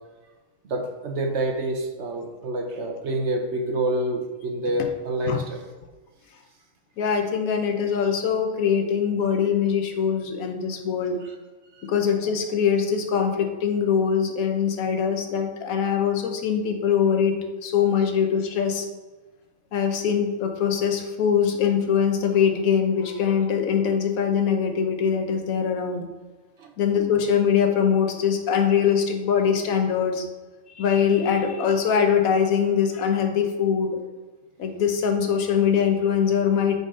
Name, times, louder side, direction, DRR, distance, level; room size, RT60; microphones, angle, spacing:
voice 1, 0.7-5.6 11.2-11.3 11.7-11.9 18.0-18.1 26.6-26.7, right 1 dB, 60° right, 3 dB, 1.2 m, -27 dB
voice 2, 7.0-11.2 11.8-18.9 19.7-26.1 26.8-30.2 30.7-34.0 34.6-36.8, left 7 dB, 85° left, 5 dB, 1.3 m, -22 dB
9.0 x 4.1 x 3.7 m, 1.2 s
omnidirectional pair, 1.4 m